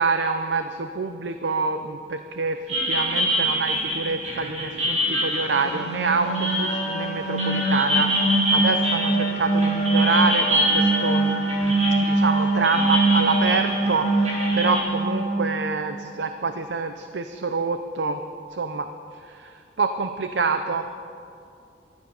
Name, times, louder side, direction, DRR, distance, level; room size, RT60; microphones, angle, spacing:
voice 1, 0.0-11.3 12.0-18.2 18.5-18.9 19.3-20.8, right 4 dB, 85° right, 8 dB, 0.7 m, -26 dB
sound 1, 2.7-14.8, equal, 40° right, 4.7 m, -26 dB
sound 2, 5.4-15.9, right 2 dB, 40° left, 2.9 m, -24 dB
14.0 x 12.0 x 7.0 m, 2.5 s
head